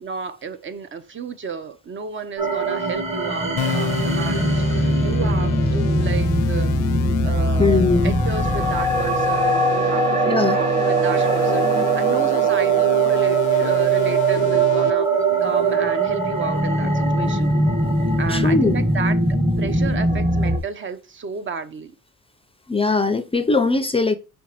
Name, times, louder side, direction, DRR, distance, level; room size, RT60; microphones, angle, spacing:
voice 1, 0.0-6.7 7.2-15.1 15.4-17.5 18.2-21.9, right 5 dB, 40° right, 0.6 m, -32 dB
sound 1, 2.4-20.6, right 3 dB, 20° right, 1.1 m, -20 dB
sound 2, 3.6-14.9, left 9 dB, 80° left, 0.5 m, -31 dB
voice 2, 7.6-8.2 10.3-10.6 14.4-14.5 18.3-18.9 22.7-24.1, left 3 dB, 20° left, 0.4 m, -20 dB
5.3 x 3.3 x 2.9 m
cardioid pair, 90°, 30 cm